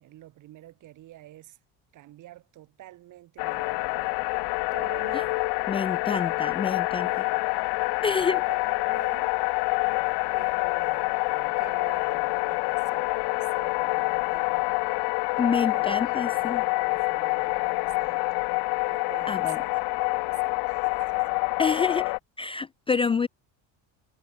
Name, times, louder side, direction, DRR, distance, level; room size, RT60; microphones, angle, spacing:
voice 1, 0.0-1.6 1.9-4.3 4.7-5.4 6.4-7.4 8.1-9.3 9.8-10.0 10.3-14.7 15.4-18.2 18.8-21.3, right 15 dB, 50° right, 6.3 m, -48 dB
sound 1, 3.4-22.2, left 28 dB, 85° left, 1.0 m, -27 dB
voice 2, 5.7-7.1 8.0-8.4 15.4-16.6 19.3-19.6 21.6-22.1 22.4-23.3, left 5 dB, 15° left, 0.4 m, -27 dB
cardioid pair, 175°, 39 cm